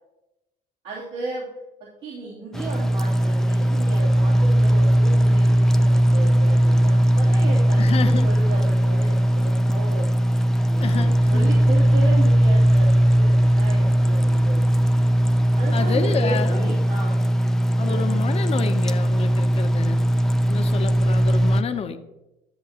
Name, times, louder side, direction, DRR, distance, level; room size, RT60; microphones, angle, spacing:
voice 1, 0.8-1.5 1.8-14.9 15.6-17.2 17.8-18.3, right 3 dB, 70° right, -7 dB, 2.9 m, -35 dB
sound 1, 2.5-21.6, equal, 5° left, 0.4 m, -19 dB
voice 2, 7.8-8.3 10.8-11.5 15.7-16.7 17.8-20.0 20.5-22.0, left 6 dB, 35° left, 7 dB, 0.8 m, -29 dB
12.5 x 7.4 x 2.9 m, 0.97 s
cardioid pair, 110°, 17 cm